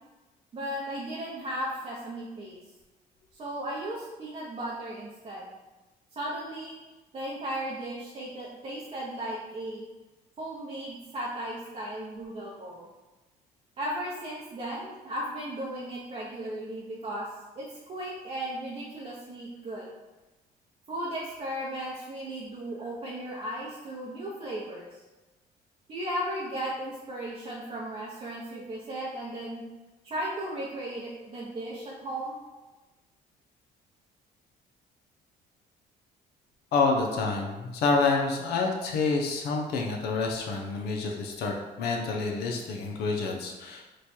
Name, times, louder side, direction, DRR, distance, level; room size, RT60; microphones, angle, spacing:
voice 1, 0.5-2.6 3.4-5.5 6.2-6.8 7.1-9.9 10.4-12.9 13.8-17.3 17.6-19.9 20.9-24.9 25.9-29.6 30.0-32.4, right 1 dB, 35° right, -6 dB, 0.7 m, -36 dB
voice 2, 36.7-43.9, left 4 dB, 75° left, 1 dB, 0.6 m, -28 dB
3.1 x 2.2 x 4.2 m, 1.1 s
cardioid pair, 110°, 17 cm